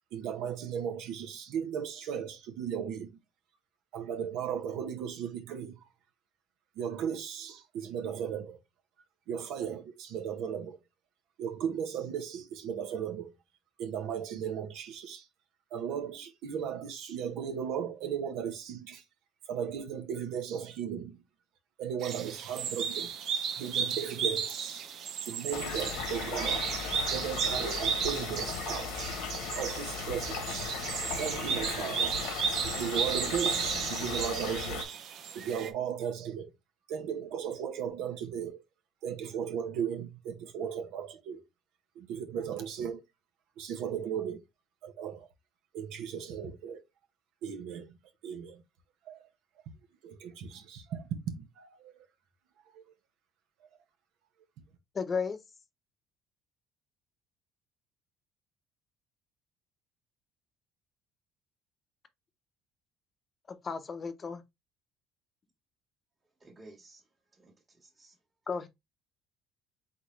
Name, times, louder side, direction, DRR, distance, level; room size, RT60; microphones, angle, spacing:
voice 1, 0.1-3.1 3.9-5.8 6.8-8.6 9.3-10.8 11.4-13.3 13.8-15.3 15.7-19.0 19.5-21.2 21.8-23.1 23.6-24.9 25.2-26.7 27.1-29.2 29.6-30.8 31.2-32.2 32.6-35.0 35.3-36.5 36.9-38.6 39.0-41.4 41.9-43.0 43.6-44.4 44.8-45.3 45.7-46.8 47.4-48.0 48.2-48.6 49.1-49.3 50.0-51.9 52.7-52.8, right 8 dB, 75° right, 1.2 m, -36 dB
sound 1, 22.0-35.7, right 7 dB, 60° right, 0.8 m, -34 dB
sound 2, 25.5-34.8, left 7 dB, 90° left, 1.2 m, -37 dB
voice 2, 54.9-55.4 63.5-64.4 68.5-68.7, left 5 dB, 30° left, 0.7 m, -34 dB
voice 3, 66.4-67.0 67.3-68.1, right 2 dB, 20° right, 1.6 m, -55 dB
4.2 x 3.9 x 3.1 m
cardioid pair, 120°, 0 cm